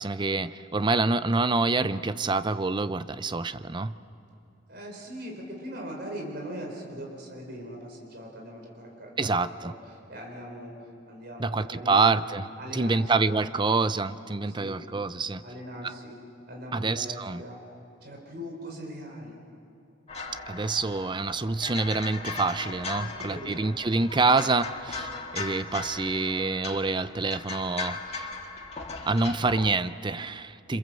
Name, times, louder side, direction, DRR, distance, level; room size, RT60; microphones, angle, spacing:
voice 1, 0.0-4.0 9.2-9.7 11.4-15.4 16.7-17.4 20.5-28.3 29.0-30.8, right 3 dB, 25° right, 13 dB, 0.6 m, -27 dB
voice 2, 4.7-9.7 10.1-10.7 11.1-12.2 12.6-13.0 14.5-14.8 15.4-16.2 16.5-17.6 18.0-19.4 22.9-23.8, equal, 55° right, 0 dB, 4.3 m, -40 dB
sound 1, 20.1-29.7, left 4 dB, 35° left, 1.8 m, -38 dB
27.5 x 26.5 x 7.7 m, 2.6 s
head